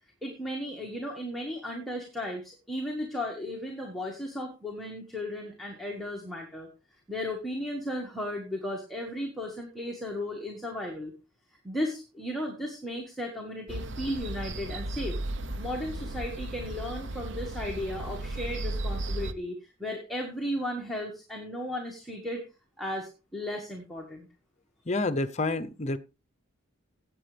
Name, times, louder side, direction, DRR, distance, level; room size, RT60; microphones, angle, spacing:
voice 1, 0.2-6.7 7.1-11.1 11.6-15.2 15.6-22.4 22.8-24.3, left 1 dB, ahead, 1.8 m, -35 dB
sound 1, 13.7-19.3, right 1 dB, 60° right, 0.8 m, -35 dB
voice 2, 24.9-26.0, left 2 dB, 35° left, 0.8 m, -28 dB
17.0 x 7.5 x 3.4 m
head